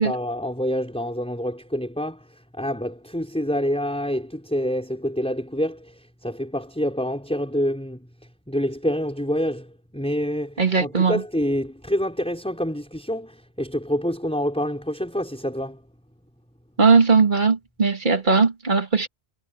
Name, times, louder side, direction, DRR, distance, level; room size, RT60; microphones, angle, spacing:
voice 1, 0.0-8.1 8.5-15.8, equal, 5° left, 5.0 m, -27 dB
voice 2, 10.6-11.2 16.8-19.1, right 4 dB, 45° right, 2.0 m, -19 dB
omnidirectional pair, 1.1 m